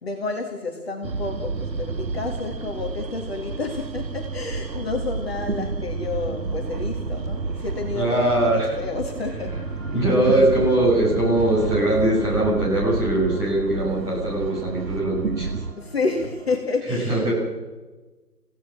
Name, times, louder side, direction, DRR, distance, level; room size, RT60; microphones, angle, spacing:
voice 1, 0.0-9.6 15.8-17.3, left 3 dB, 35° left, 1 dB, 2.4 m, -30 dB
sound 1, 1.0-15.7, right 4 dB, 85° right, 1.3 m, -30 dB
voice 2, 7.9-8.8 9.5-9.6 9.9-15.5 16.9-17.3, right 1 dB, 5° right, -9 dB, 6.8 m, -21 dB
sound 2, 9.5-16.6, right 3 dB, 50° right, 5.5 m, -39 dB
28.5 x 17.0 x 6.4 m, 1.2 s
figure-of-eight pair, 165°, 50 cm